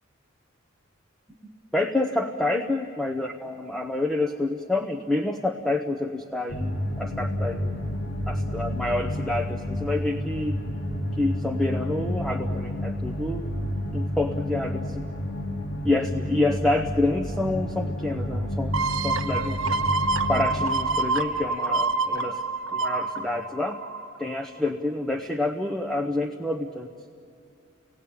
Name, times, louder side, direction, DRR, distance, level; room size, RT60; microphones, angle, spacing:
voice 1, 1.7-7.7 8.3-10.6 11.2-13.5 13.9-15.0 15.8-18.8 19.0-19.7 20.3-22.4 22.7-23.8 24.2-26.9, left 2 dB, ahead, 4 dB, 0.8 m, -28 dB
sound 1, 6.5-20.7, left 1 dB, 85° left, 2.7 m, -30 dB
sound 2, 18.7-24.2 24.7-24.8, right 3 dB, 65° right, 1.3 m, -27 dB
30.0 x 18.5 x 8.7 m, 2.5 s
head